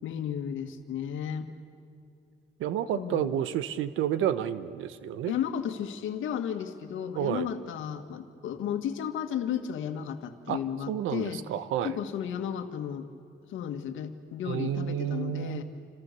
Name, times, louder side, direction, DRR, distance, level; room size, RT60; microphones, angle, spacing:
voice 1, 0.0-1.5 2.9-3.3 5.3-11.4 11.8-13.1 13.5-15.6, left 9 dB, 80° left, 7 dB, 2.0 m, -33 dB
voice 2, 2.6-5.3 7.1-7.5 10.5-10.6 10.9-12.0 14.4-15.6, right 10 dB, 90° right, 13 dB, 1.2 m, -30 dB
29.0 x 26.5 x 6.9 m, 2.4 s
cardioid pair, 90°, 20 cm